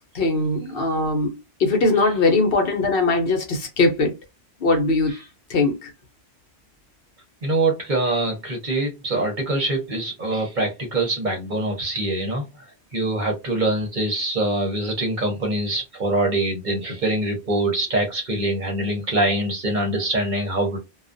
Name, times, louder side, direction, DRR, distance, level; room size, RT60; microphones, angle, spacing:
voice 1, 0.1-4.1 4.6-5.2 5.5-5.9, left 3 dB, 65° left, 0.8 m, -21 dB
voice 2, 7.4-12.4 12.9-20.8, right 2 dB, 45° right, 0.9 m, -24 dB
2.3 x 2.3 x 2.5 m
omnidirectional pair, 1.1 m